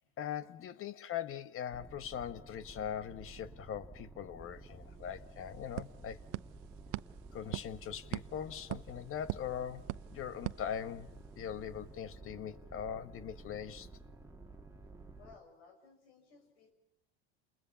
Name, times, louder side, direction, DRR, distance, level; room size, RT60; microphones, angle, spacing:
voice 1, 0.2-6.2 7.3-13.9, left 9 dB, 40° left, 1.4 m, -41 dB
sound 1, 1.7-15.4, right 3 dB, 10° right, 2.4 m, -53 dB
sound 2, 4.6-4.7 5.0-11.4, right 20 dB, 65° right, 0.9 m, -44 dB
voice 2, 15.2-16.7, left 5 dB, 90° left, 6.4 m, -59 dB
29.0 x 21.0 x 7.1 m
supercardioid pair, 105°, 32 cm